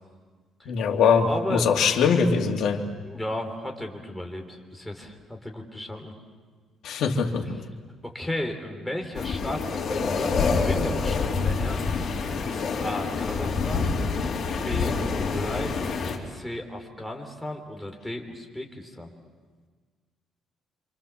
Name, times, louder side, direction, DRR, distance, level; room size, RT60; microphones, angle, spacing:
voice 1, 0.7-2.8 6.8-7.4, left 6 dB, 70° left, 2 dB, 2.8 m, -22 dB
voice 2, 1.3-1.8 3.0-6.1 8.0-11.9 12.5-13.9 14.6-15.7 16.3-19.1, left 1 dB, 5° left, 2 dB, 3.6 m, -34 dB
sound 1, 9.2-16.2, left 4 dB, 45° left, 3.9 m, -26 dB
28.0 x 27.0 x 7.3 m, 1.5 s
cardioid pair, 140°, 0 cm